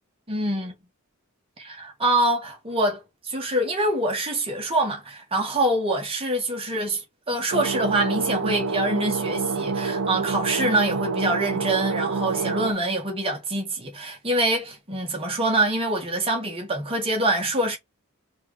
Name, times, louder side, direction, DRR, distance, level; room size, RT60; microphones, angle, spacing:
voice 1, 0.3-0.7 1.6-17.8, right 1 dB, 25° right, 1.6 m, -25 dB
sound 1, 7.5-12.7, right 4 dB, 60° right, 0.5 m, -27 dB
4.6 x 3.3 x 3.2 m
head